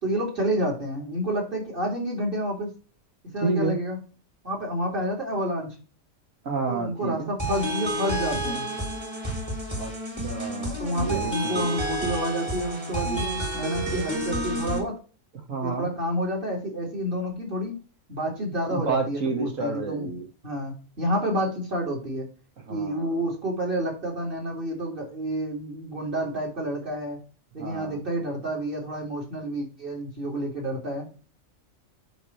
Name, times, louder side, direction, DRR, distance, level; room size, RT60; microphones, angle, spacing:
voice 1, 0.0-2.7 3.3-4.0 4.4-5.8 6.7-8.7 10.8-13.3 13.5-14.9 15.6-17.8 18.1-20.1 20.4-22.3 22.7-27.2 27.5-31.1, right 1 dB, 40° right, -1 dB, 2.7 m, -29 dB
voice 2, 3.4-3.8 6.4-7.3 9.8-9.9 10.2-11.7 15.5-15.9 18.7-20.3 22.7-23.3 27.6-28.0, right 3 dB, 75° right, 2 dB, 2.0 m, -30 dB
sound 1, 7.4-14.8, right 1 dB, 20° right, 1.8 m, -30 dB
9.1 x 3.4 x 4.4 m, 0.37 s
omnidirectional pair, 1.4 m